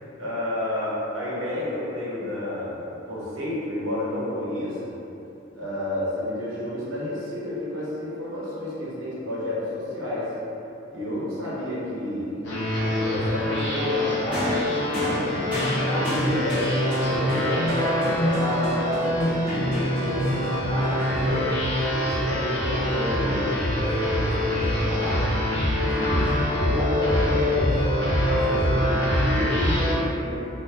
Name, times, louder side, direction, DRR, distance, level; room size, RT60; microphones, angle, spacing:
voice 1, 0.2-4.9 5.5-10.3 10.9-12.5 12.8-14.6 15.0-21.5 22.0-25.3 25.7-27.7 28.2-30.4, left 1 dB, 80° right, -8 dB, 1.0 m, -30 dB
sound 1, 12.4-29.9, left 1 dB, 70° left, 0.8 m, -24 dB
sound 2, 14.3-21.8 22.8-22.9, equal, 5° right, 0.9 m, -35 dB
2.8 x 2.8 x 3.3 m, 2.9 s
head